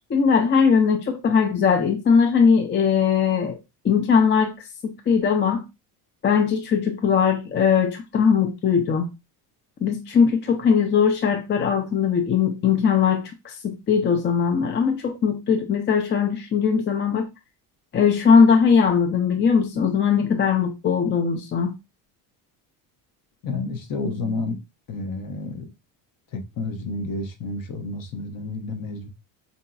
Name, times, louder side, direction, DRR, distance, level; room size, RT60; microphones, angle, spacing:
voice 1, 0.1-3.6 3.8-4.5 5.1-5.6 6.2-9.1 9.8-17.3 17.9-21.7, left 6 dB, 25° left, 0.4 m, -20 dB
voice 2, 23.4-24.6 24.9-25.6 26.3-29.1, left 3 dB, 45° left, 0.8 m, -30 dB
3.9 x 2.7 x 2.2 m
cardioid pair, 120°, 45 cm